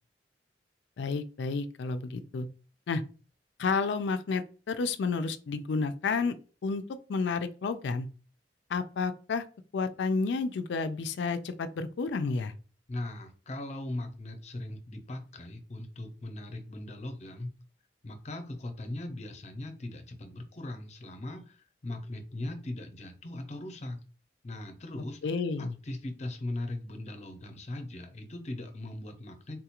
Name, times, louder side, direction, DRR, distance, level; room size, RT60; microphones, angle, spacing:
voice 1, 1.0-2.5 2.9-3.0 3.6-6.3 6.6-6.8 7.1-8.1 8.7-9.4 9.7-12.5 25.2-25.7, left 4 dB, 80° left, 10 dB, 0.4 m, -30 dB
voice 2, 12.9-17.5 18.0-24.0 24.4-25.2 25.6-29.6, left 1 dB, 40° left, 6 dB, 0.6 m, -39 dB
3.7 x 2.4 x 2.8 m, 0.37 s
head